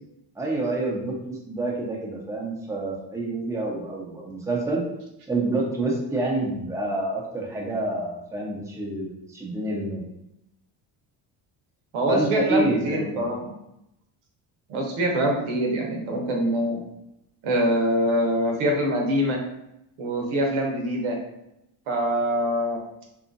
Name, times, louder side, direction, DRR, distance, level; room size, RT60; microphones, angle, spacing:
voice 1, 0.4-4.8 5.3-10.0 12.1-13.3, right 2 dB, 5° right, -3 dB, 0.7 m, -28 dB
voice 2, 11.9-13.5 14.7-16.8 17.4-19.4 20.0-21.2 21.9-22.8, equal, 75° right, 0 dB, 0.9 m, -24 dB
2.8 x 2.4 x 2.5 m, 0.83 s
supercardioid pair, 80°, 49 cm